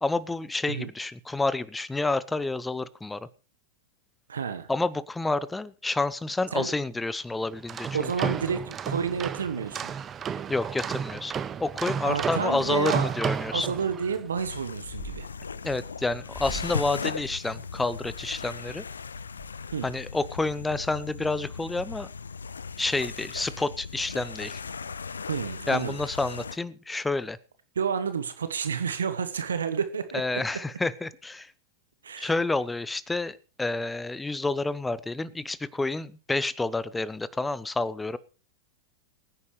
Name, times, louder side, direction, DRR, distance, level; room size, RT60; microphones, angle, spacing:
voice 1, 0.0-3.3 4.7-8.3 10.5-11.3 11.6-13.7 15.6-18.8 19.8-22.1 22.8-24.6 25.7-27.4 30.1-31.5 32.2-38.2, left 2 dB, 10° left, 19 dB, 0.8 m, -29 dB
voice 2, 4.3-4.7 6.5-6.7 7.9-9.9 12.0-13.1 13.5-15.3 19.7-19.9 25.3-26.0 27.7-30.4 32.0-32.3, right 6 dB, 75° right, 11 dB, 1.2 m, -30 dB
sound 1, 7.5-14.2, right 7 dB, 25° right, 0.8 m, -32 dB
sound 2, 14.3-26.6, left 5 dB, 80° left, 0.5 m, -38 dB
sound 3, 14.3-14.5 14.8-15.9 16.3-16.9 17.3-18.3 18.8-18.9 19.1-20.3, left 1 dB, 40° left, 3.1 m, -42 dB
22.5 x 9.8 x 3.2 m, 0.34 s
figure-of-eight pair, 95°, 0 cm